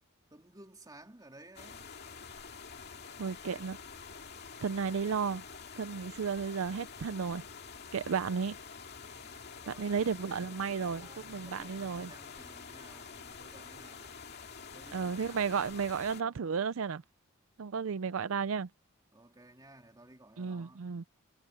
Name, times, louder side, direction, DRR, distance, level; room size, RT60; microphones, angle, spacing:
voice 1, 0.3-1.9 8.9-14.2 14.6-15.9 17.8-18.0 19.1-20.9, right 1 dB, 20° right, 3.0 m, -56 dB
sound 1, 1.6-16.2, left 5 dB, 50° left, 2.3 m, -48 dB
voice 2, 3.2-3.8 4.6-5.4 5.8-7.4 7.9-8.6 9.7-12.1 14.9-17.0 17.6-18.7 20.4-21.0, right 6 dB, 70° right, 0.5 m, -33 dB
head